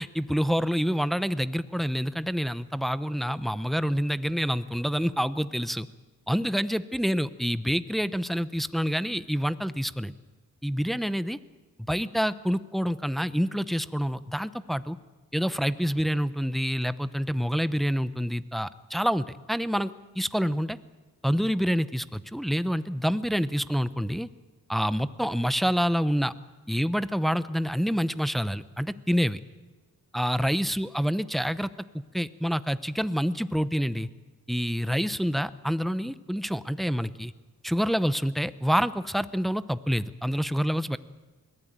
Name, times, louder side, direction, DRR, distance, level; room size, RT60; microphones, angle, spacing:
voice 1, 0.0-5.9 6.3-10.1 10.6-11.4 11.9-15.0 15.3-20.8 21.2-24.3 24.7-26.3 26.7-29.4 30.1-31.7 32.1-34.1 34.5-37.3 37.6-41.0, equal, ahead, 14 dB, 0.8 m, -27 dB
21.5 x 15.0 x 8.9 m, 1.3 s
cardioid pair, 65°, 37 cm